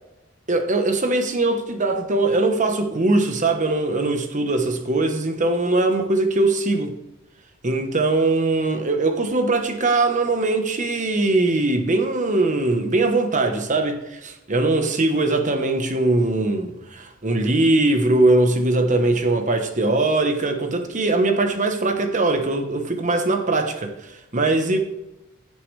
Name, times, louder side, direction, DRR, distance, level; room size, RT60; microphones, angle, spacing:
voice 1, 0.5-6.9 7.6-23.9 24.3-24.8, right 2 dB, 35° right, 5 dB, 1.1 m, -21 dB
16.0 x 6.7 x 3.4 m, 0.95 s
head